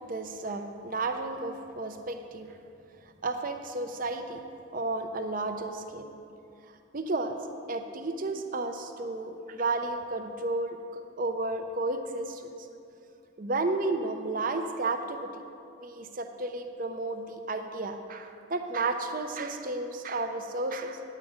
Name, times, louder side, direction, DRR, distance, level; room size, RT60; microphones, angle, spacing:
voice 1, 0.1-2.6 3.2-4.4 4.7-6.1 6.9-7.4 7.7-12.5 13.4-15.3 15.8-21.2, right 2 dB, 40° right, 6 dB, 0.6 m, -32 dB
9.5 x 8.4 x 5.0 m, 2.6 s
head